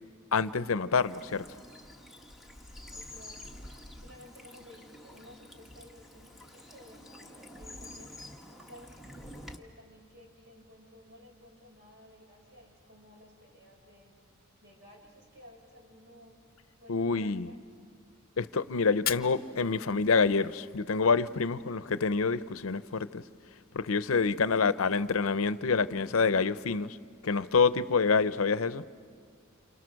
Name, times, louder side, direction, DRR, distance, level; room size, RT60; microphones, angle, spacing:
voice 1, 0.3-1.5 16.9-17.5 18.4-23.2 23.7-27.0 27.2-28.8, left 4 dB, 80° left, 0.7 m, -27 dB
Bird vocalization bird call bird song / Stream, 0.9-9.6, left 1 dB, ahead, 1.4 m, -48 dB
voice 2, 2.9-8.9 9.2-14.3 14.6-16.4 16.8-17.7, left 1 dB, 60° right, 5.4 m, -55 dB
Fire, 18.9-20.9, left 11 dB, 45° left, 0.8 m, -39 dB
28.5 x 28.0 x 6.4 m
head